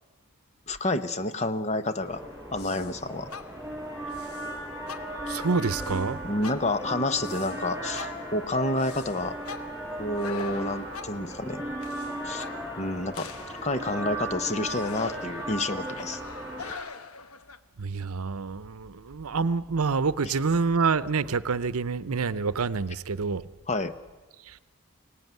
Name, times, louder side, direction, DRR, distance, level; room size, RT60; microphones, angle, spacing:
voice 1, 0.7-3.3 6.2-9.3 10.0-11.6 12.2-12.4 12.8-13.3 13.6-16.2 23.7-23.9, left 2 dB, 30° left, 11 dB, 0.9 m, -29 dB
sound 1, 2.0-16.7, equal, 15° right, 6.9 m, -36 dB
sound 2, 2.6-3.0 3.3-3.8 4.1-4.5 4.9-5.3 5.7-6.1 6.4-7.6 7.9-11.3 11.8-12.8 13.1-17.6, left 5 dB, 80° left, 1.1 m, -43 dB
voice 2, 5.3-6.2 17.8-23.4 24.5-24.6, right 4 dB, 80° right, 16 dB, 0.7 m, -27 dB
24.0 x 18.0 x 9.4 m, 1.3 s
head